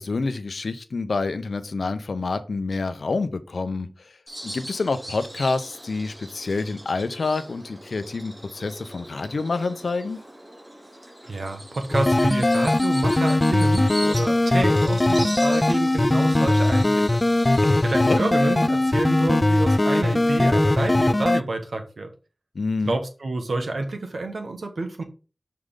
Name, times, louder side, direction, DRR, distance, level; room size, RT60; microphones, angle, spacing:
voice 1, 0.0-3.9 4.4-10.2 17.6-18.2 22.5-22.9, left 3 dB, 85° left, 11 dB, 0.7 m, -27 dB
Bird vocalization bird call bird song, 4.3-20.3, equal, 25° right, 3.0 m, -40 dB
voice 2, 11.3-17.2 17.8-22.1 22.8-25.0, right 2 dB, 80° right, 5 dB, 1.4 m, -28 dB
sound 1, 11.9-21.4, left 2 dB, 30° left, 0.3 m, -20 dB
6.6 x 4.7 x 3.8 m, 0.33 s
wide cardioid pair, 65°, 0 cm